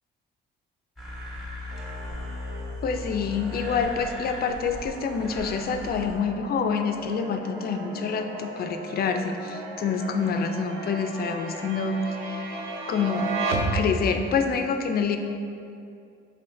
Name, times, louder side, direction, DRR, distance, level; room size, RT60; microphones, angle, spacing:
sound 1, 1.0-6.2, left 1 dB, ahead, 1.0 m, -37 dB
sound 2, 1.7-14.3, right 2 dB, 80° right, 0.5 m, -35 dB
voice 1, 2.8-13.3 13.7-15.2, left 5 dB, 50° left, 6 dB, 0.4 m, -27 dB
5.6 x 3.6 x 2.6 m, 2.5 s
cardioid pair, 90°, 20 cm